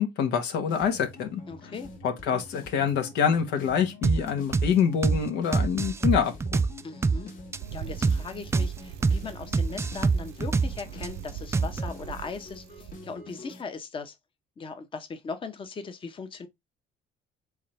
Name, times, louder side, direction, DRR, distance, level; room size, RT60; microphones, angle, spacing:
voice 1, 0.0-1.4 2.0-6.3, left 7 dB, 85° left, 1.2 m, -26 dB
sound 1, 0.7-13.6, left 2 dB, 55° left, 1.4 m, -46 dB
voice 2, 1.5-1.9 6.8-7.3 7.7-14.1 14.6-16.5, left 5 dB, 30° left, 0.8 m, -39 dB
sound 2, 4.0-4.2 4.5-4.7 5.0-5.2 5.5-7.2 7.5-7.6 8.0-8.2 8.5-8.7 9.0-9.2 9.5-11.1 11.5-11.9, right 4 dB, 15° right, 0.3 m, -24 dB
Bicycle, 7.5-13.0, right 12 dB, 80° right, 0.6 m, -41 dB
3.7 x 3.4 x 4.2 m
cardioid pair, 110°, 17 cm